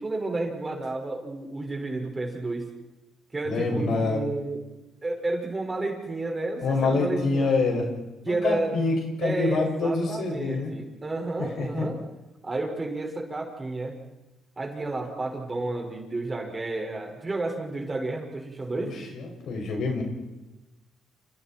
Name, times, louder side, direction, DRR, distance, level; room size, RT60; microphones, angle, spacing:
voice 1, 0.0-2.7 3.3-4.6 5.0-7.5 8.2-12.0 12.4-14.0 14.6-19.0, right 2 dB, 25° right, 2 dB, 5.7 m, -31 dB
voice 2, 3.4-4.2 6.6-7.9 8.3-10.7 11.4-11.9 18.7-20.0, left 3 dB, 70° left, 1 dB, 6.5 m, -26 dB
29.5 x 28.5 x 4.6 m, 1.0 s
cardioid pair, 90°, 0 cm